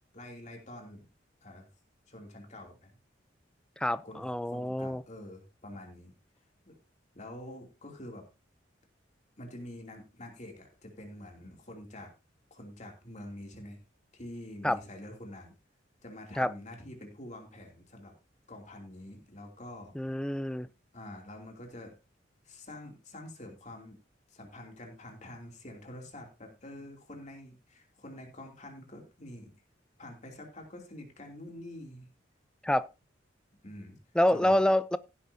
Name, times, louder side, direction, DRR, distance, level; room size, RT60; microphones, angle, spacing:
voice 1, 0.1-1.0 1.4-1.7 2.1-2.9 4.0-4.2 4.5-6.1 6.6-6.8 7.1-8.2 9.4-12.1 12.5-13.8 14.1-15.5 16.0-18.1 18.5-20.0 20.9-21.9 22.4-24.0 24.3-29.5 30.0-32.1 33.6-34.0 34.3-34.6, left 1 dB, 40° left, 2.8 m, -46 dB
voice 2, 3.8-5.0 14.6-14.8 16.4-16.5 19.9-20.7 32.6-32.9 34.1-35.0, left 1 dB, 5° left, 0.4 m, -27 dB
16.5 x 8.5 x 2.8 m
head